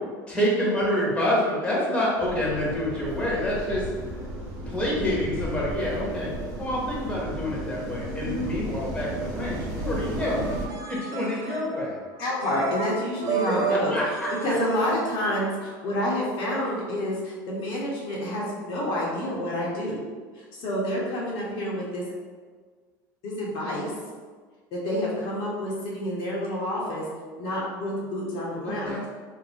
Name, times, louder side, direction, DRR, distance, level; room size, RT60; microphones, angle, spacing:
voice 1, 0.3-3.9 4.6-6.3 6.6-10.5 10.8-12.0 13.5-14.5 28.7-29.0, left 1 dB, 10° left, -5 dB, 1.0 m, -27 dB
sound 1, 2.2-10.7, right 1 dB, 65° right, 0.8 m, -34 dB
voice 2, 8.2-8.5 12.2-14.0 14.4-20.0 20.3-22.0 23.2-23.9 24.7-27.0 27.4-29.1, left 1 dB, 60° left, -5 dB, 0.8 m, -28 dB
sound 2, 10.5-15.9, right 6 dB, 35° right, 0.5 m, -33 dB
2.6 x 2.0 x 3.5 m, 1.5 s
hypercardioid pair, 85°, 11 cm